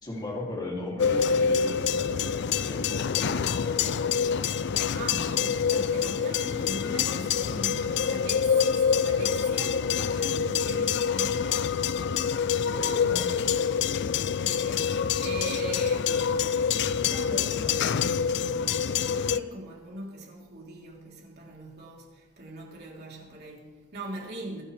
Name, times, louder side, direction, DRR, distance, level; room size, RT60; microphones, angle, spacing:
voice 1, 0.0-4.2 12.7-13.9, left 1 dB, 20° left, 2.9 m, -37 dB
sound 1, 1.0-19.4, left 7 dB, 55° left, 0.4 m, -26 dB
voice 2, 4.9-11.5 14.4-16.6 17.1-24.6, right 2 dB, 50° right, 3.6 m, -41 dB
23.5 x 10.0 x 3.4 m
head